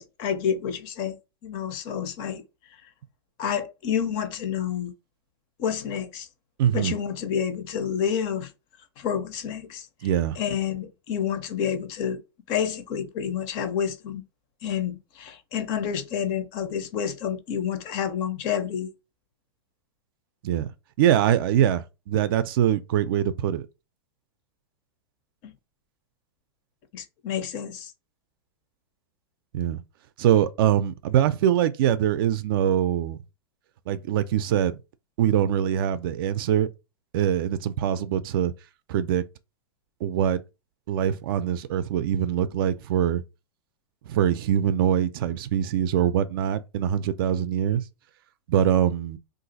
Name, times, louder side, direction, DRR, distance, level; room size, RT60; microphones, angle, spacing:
voice 1, 0.0-2.4 3.4-4.9 5.6-6.3 6.7-8.5 9.0-10.1 10.4-12.2 12.5-14.2 14.6-18.9 25.4-25.5 26.9-27.9, left 8 dB, 35° left, 0.5 m, -29 dB
voice 2, 6.6-6.9 10.0-10.4 20.4-20.7 21.0-23.7 29.5-29.8 30.2-33.2 33.9-34.7 35.2-36.7 37.1-38.5 38.9-39.2 40.0-40.4 40.9-43.2 44.1-47.8 48.5-49.2, right 10 dB, 55° right, 0.4 m, -23 dB
2.5 x 2.4 x 3.9 m
supercardioid pair, 155°, 14 cm